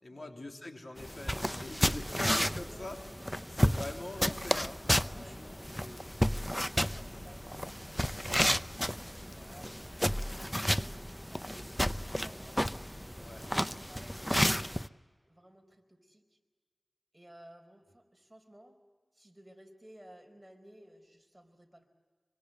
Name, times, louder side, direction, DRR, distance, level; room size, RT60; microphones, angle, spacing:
voice 1, 0.0-3.0 3.6-6.0 7.0-7.2 9.1-9.2 13.2-13.4, left 2 dB, 65° left, 2 dB, 3.4 m, -44 dB
sound 1, 1.0-14.9, equal, 5° left, 0.7 m, -32 dB
voice 2, 5.1-12.6 13.1-15.0 15.2-16.4 17.1-18.8 19.1-21.9, right 1 dB, 10° right, 4 dB, 4.7 m, -57 dB
25.5 x 25.0 x 7.8 m, 1.5 s
wide cardioid pair, 45°, 0 cm